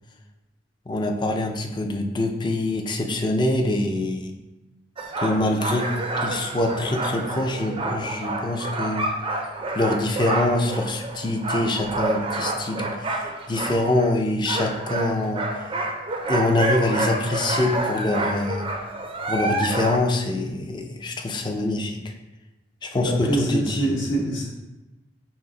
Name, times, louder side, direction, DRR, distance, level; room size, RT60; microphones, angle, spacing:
voice 1, 0.9-4.3 5.2-5.9 6.2-9.1 9.7-13.2 13.5-15.5 16.3-18.7 19.3-22.0 22.8-23.9, left 2 dB, 25° left, 3 dB, 0.4 m, -24 dB
sound 1, 5.0-14.1 14.5-20.0, right 2 dB, 30° right, 0.5 m, -28 dB
voice 2, 22.9-24.4, right 1 dB, 90° left, -4 dB, 1.3 m, -25 dB
5.8 x 2.0 x 3.8 m, 1.0 s
head